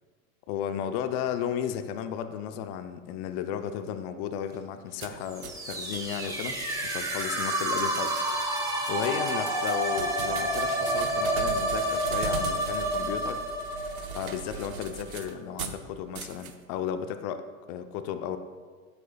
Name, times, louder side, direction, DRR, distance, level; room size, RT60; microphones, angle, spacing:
voice 1, 0.5-8.2 8.9-13.4 14.1-18.4, left 9 dB, 40° left, 9 dB, 0.6 m, -34 dB
sound 1, 5.0-15.8 16.1-16.5, right 7 dB, 85° right, 0.9 m, -40 dB
sound 2, 5.2-15.0, right 1 dB, 10° right, 1.5 m, -29 dB
11.5 x 8.1 x 2.3 m, 1.5 s
hypercardioid pair, 105°, 42 cm